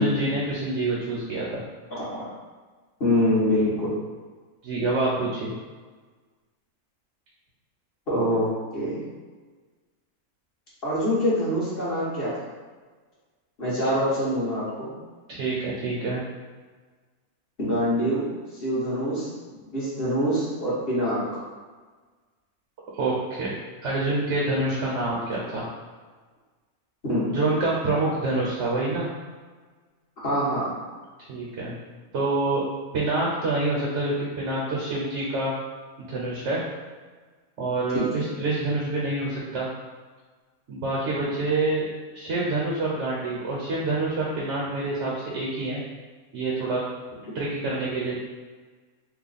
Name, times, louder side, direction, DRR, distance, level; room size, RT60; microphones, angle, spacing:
voice 1, 0.0-1.6 4.6-5.5 15.3-16.2 22.9-23.5 23.8-25.7 27.3-29.1 31.3-31.7 32.1-32.6 32.9-35.5 36.0-36.6 37.6-39.7 40.7-41.8 42.1-45.8 46.3-46.8 47.3-48.1, right 2 dB, 60° right, -5 dB, 1.0 m, -26 dB
voice 2, 1.9-2.2 3.0-3.9 8.1-9.0 10.8-12.3 13.6-14.9 17.6-19.3 19.7-21.4 27.0-27.3 30.2-30.7 37.9-38.3, equal, 40° left, -9 dB, 1.3 m, -25 dB
3.1 x 2.2 x 3.9 m, 1.4 s
omnidirectional pair, 1.6 m